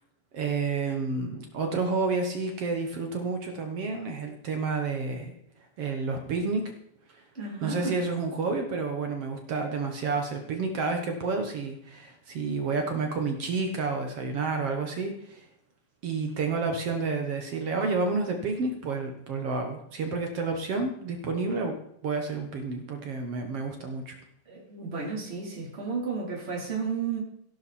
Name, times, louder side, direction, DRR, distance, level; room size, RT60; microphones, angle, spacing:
voice 1, 0.3-5.3 5.8-6.6 7.1-7.2 7.6-15.4 16.0-21.8 22.0-24.2, right 4 dB, 55° right, 4 dB, 1.7 m, -30 dB
voice 2, 7.3-8.0 24.5-27.2, right 4 dB, 15° right, -3 dB, 3.6 m, -33 dB
16.0 x 11.5 x 4.3 m, 0.72 s
omnidirectional pair, 4.3 m